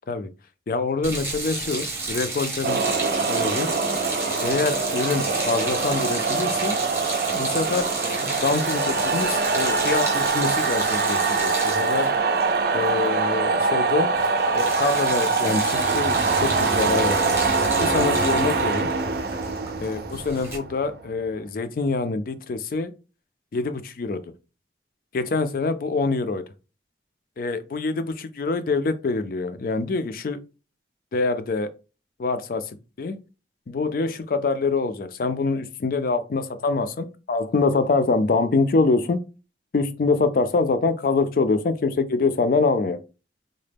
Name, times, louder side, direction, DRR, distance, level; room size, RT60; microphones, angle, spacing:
voice 1, 0.7-2.8 3.3-3.7 4.4-6.8 7.3-12.1 12.7-14.1 14.5-17.3 17.8-18.9 19.8-22.9 23.5-24.3 25.1-26.4 27.4-30.4 31.1-31.7 32.2-32.7 33.0-33.2 33.7-39.2 39.7-43.0, left 3 dB, 50° left, 0.4 m, -25 dB
sound 1, 1.0-13.4 13.7-13.9 14.1-20.6, right 3 dB, 15° right, 0.8 m, -31 dB
sound 2, 2.6-21.2, right 4 dB, 60° right, 0.4 m, -24 dB
3.8 x 2.1 x 3.4 m
head